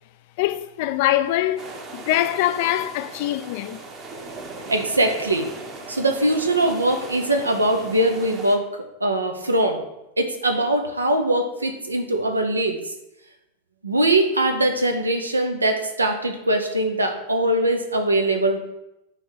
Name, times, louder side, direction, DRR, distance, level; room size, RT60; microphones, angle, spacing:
voice 1, 0.4-3.8, left 14 dB, 50° left, 0.3 m, -23 dB
sound 1, 1.6-8.6, right 3 dB, 35° right, 1.0 m, -38 dB
voice 2, 4.7-5.5 5.9-9.8 10.2-12.8 13.8-18.6, right 1 dB, 80° right, 0.7 m, -22 dB
6.3 x 3.3 x 5.6 m
figure-of-eight pair, 90°, 0 cm